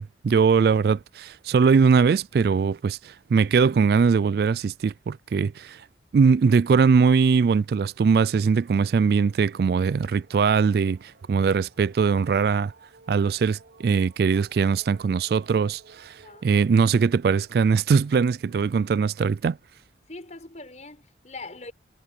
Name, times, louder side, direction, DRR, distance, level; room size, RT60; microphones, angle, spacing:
voice 1, 0.0-5.8 6.1-12.7 13.1-16.1 16.4-19.6, right 5 dB, 60° right, 0.3 m, -21 dB
sound 1, 7.8-19.6, right 3 dB, 85° right, 3.5 m, -56 dB
voice 2, 20.1-21.7, left 3 dB, 40° left, 5.8 m, -41 dB
head